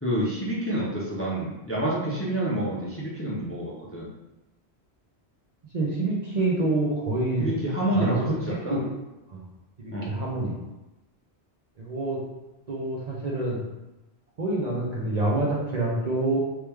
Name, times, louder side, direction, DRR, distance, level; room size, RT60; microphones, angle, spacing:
voice 1, 0.0-4.1 7.4-8.8 9.9-10.1, right 1 dB, 15° left, -6 dB, 0.5 m, -28 dB
voice 2, 5.7-7.5 7.9-8.2 8.5-8.9 9.3-9.4 9.8-10.5 11.8-12.2 12.7-13.6 14.4-16.4, right 2 dB, 45° right, -5 dB, 0.7 m, -27 dB
3.2 x 3.0 x 3.4 m, 1.0 s
omnidirectional pair, 1.1 m